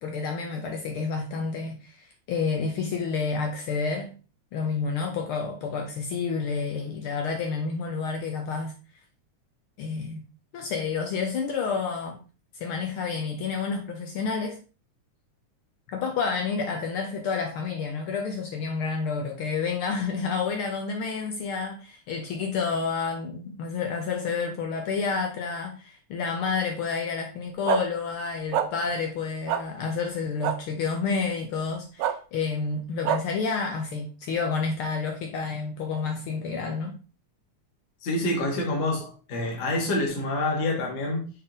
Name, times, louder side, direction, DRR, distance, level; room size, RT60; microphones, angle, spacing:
voice 1, 0.0-4.1 4.5-8.7 9.8-10.2 10.5-12.2 12.6-14.6 15.9-37.0, left 5 dB, 80° left, 1.2 m, -29 dB
sound 1, 27.7-27.8 28.5-28.7 29.5-29.6 30.4-30.6 32.0-32.1 33.0-33.2, right 10 dB, 85° right, 2.0 m, -24 dB
voice 2, 38.0-41.3, left 1 dB, 65° left, 2.7 m, -27 dB
6.5 x 3.7 x 3.8 m
omnidirectional pair, 3.3 m